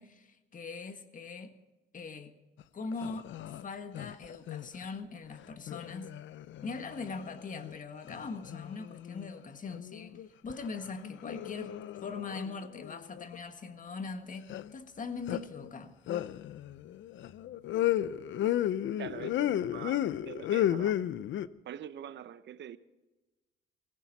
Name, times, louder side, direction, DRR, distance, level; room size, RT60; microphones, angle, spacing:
voice 1, 0.0-1.5 1.9-2.3 2.7-6.1 6.6-11.7 12.0-16.0, left 4 dB, 40° left, 1.6 m, -41 dB
sound 1, 2.6-2.7 2.9-3.6 3.9-4.8 5.7-7.8 8.1-9.3 9.6-10.7 11.0-13.4 14.5-14.7 15.3-15.7 16.1-21.5, left 12 dB, 70° left, 0.6 m, -34 dB
voice 2, 19.0-21.0 21.6-22.8, right 10 dB, 65° right, 0.9 m, -44 dB
18.0 x 16.0 x 4.2 m
cardioid pair, 90°, 20 cm